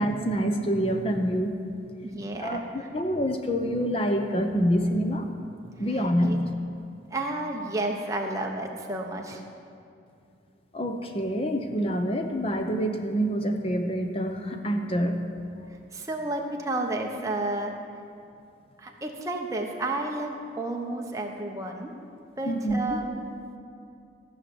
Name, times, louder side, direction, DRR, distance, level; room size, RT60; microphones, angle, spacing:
voice 1, 0.0-1.6 2.4-5.3 5.8-6.5 10.7-15.2 22.5-23.0, equal, 30° left, 5 dB, 0.8 m, -26 dB
voice 2, 2.0-2.9 5.9-6.4 7.1-9.4 15.9-17.7 18.8-21.9 22.4-23.2, right 2 dB, 15° right, 1 dB, 1.0 m, -31 dB
14.5 x 5.8 x 8.0 m, 2.5 s
head